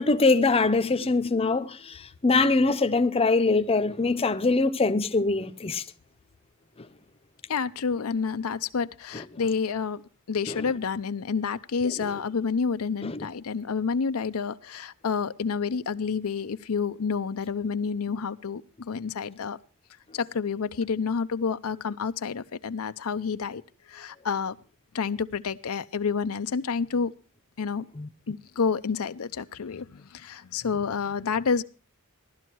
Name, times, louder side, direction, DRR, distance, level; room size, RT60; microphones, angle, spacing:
voice 1, 0.0-5.8 10.5-10.6 13.0-13.3 27.9-28.1, left 3 dB, 25° left, 0.7 m, -23 dB
voice 2, 7.5-10.0 10.3-19.6 20.1-23.6 23.9-24.6 24.9-27.1 27.6-27.8 28.3-31.6, left 5 dB, 75° left, 0.6 m, -29 dB
17.0 x 12.0 x 4.6 m
head